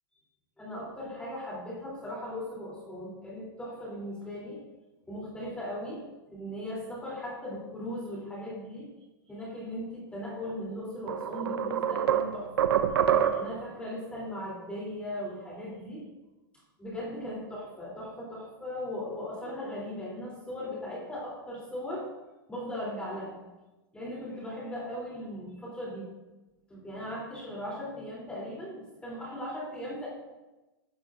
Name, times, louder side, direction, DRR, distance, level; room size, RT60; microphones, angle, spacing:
voice 1, 0.6-4.6 5.1-6.0 6.3-8.9 9.3-12.5 13.3-16.0 16.8-22.1 22.5-23.4 23.9-26.1 26.7-30.1, left 1 dB, 10° left, -6 dB, 3.2 m, -38 dB
sound 1, 10.5-10.6 11.1-13.7, right 9 dB, 80° right, 0.9 m, -26 dB
14.0 x 11.0 x 2.6 m, 1.1 s
hypercardioid pair, 135°, 12 cm